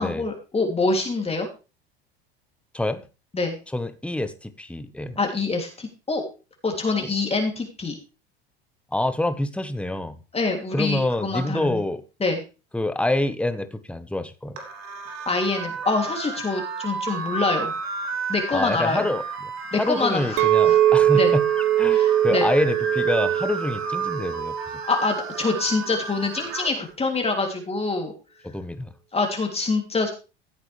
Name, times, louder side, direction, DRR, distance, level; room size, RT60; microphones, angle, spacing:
voice 1, 0.0-1.5 3.3-3.6 5.2-6.2 6.6-7.9 10.3-11.8 12.2-12.4 15.3-17.7 18.3-19.0 19.7-20.8 21.1-21.3 21.9-22.5 24.9-28.1 29.1-30.1, left 3 dB, 20° left, 2 dB, 3.0 m, -25 dB
voice 2, 2.7-3.1 3.7-5.2 7.0-7.1 8.9-10.2 10.7-12.0 12.7-14.6 18.5-21.4 21.8-24.6 28.4-28.9, left 1 dB, 5° left, 11 dB, 1.2 m, -26 dB
sound 1, 14.6-26.7, right 4 dB, 75° right, 3.1 m, -32 dB
Chink clink, 20.4-24.7 25.0-25.5, right 11 dB, 45° right, 0.7 m, -21 dB
15.0 x 8.3 x 3.4 m, 0.31 s
hypercardioid pair, 85°, 31 cm